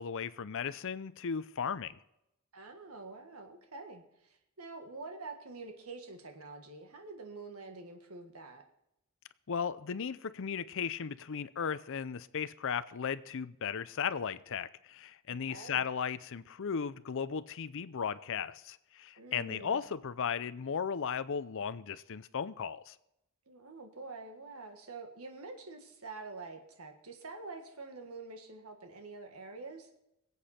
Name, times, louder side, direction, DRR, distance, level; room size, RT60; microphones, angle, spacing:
voice 1, 0.0-2.0 9.5-23.0, left 6 dB, 60° left, 0.5 m, -36 dB
voice 2, 2.5-8.6 15.5-15.8 19.2-19.8 23.5-29.9, right 3 dB, 85° right, 1.7 m, -47 dB
21.5 x 8.3 x 4.3 m
head